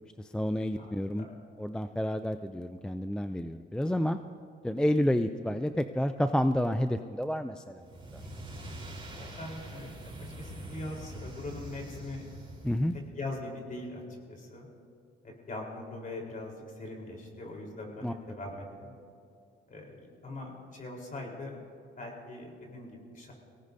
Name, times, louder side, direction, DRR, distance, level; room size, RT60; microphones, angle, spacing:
voice 1, 0.0-1.3 1.6-4.2 4.6-7.8 12.6-12.9 18.0-18.1, equal, 5° left, 9 dB, 0.4 m, -29 dB
voice 2, 0.7-1.4 9.2-12.2 13.2-14.0 14.3-14.7 15.5-18.9 19.7-21.6 22.0-23.3, left 2 dB, 40° left, 0 dB, 4.1 m, -41 dB
sound 1, 7.8-13.1, right 1 dB, 25° right, 4.1 m, -44 dB
23.0 x 17.5 x 2.8 m, 2.4 s
cardioid pair, 90°, 20 cm